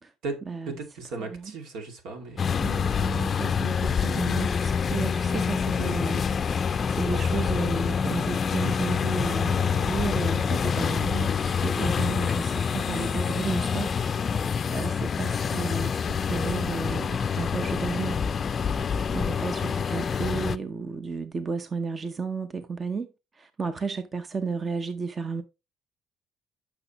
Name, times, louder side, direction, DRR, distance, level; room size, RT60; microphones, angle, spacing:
voice 1, 0.7-2.6 18.8-19.4, right 3 dB, 75° right, 2.3 m, -37 dB
voice 2, 1.2-1.5 2.6-6.3 6.5-14.0 14.7-18.2 19.1-23.1 23.3-25.4, right 5 dB, 30° right, 0.7 m, -33 dB
sound 1, 2.4-20.6, left 6 dB, 35° left, 0.5 m, -26 dB
9.5 x 6.2 x 3.0 m
cardioid pair, 110°, 0 cm